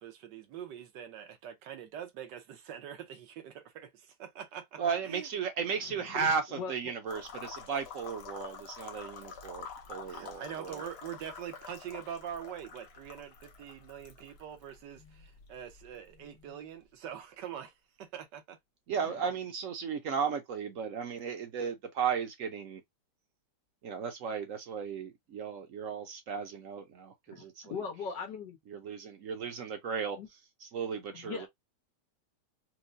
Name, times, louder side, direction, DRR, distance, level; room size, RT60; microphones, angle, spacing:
voice 1, 0.0-5.3 10.1-18.6, right 9 dB, 85° right, 1.5 m, -44 dB
voice 2, 4.8-10.8 18.9-22.8 23.8-27.7 28.7-30.2 30.6-31.5, right 6 dB, 60° right, 0.9 m, -35 dB
voice 3, 5.7-6.9 18.9-19.2 27.3-28.6 30.2-30.3 31.1-31.5, left 6 dB, 85° left, 1.7 m, -41 dB
sound 1, 7.1-16.8, left 6 dB, 65° left, 0.6 m, -48 dB
4.5 x 2.1 x 2.5 m
omnidirectional pair, 1.8 m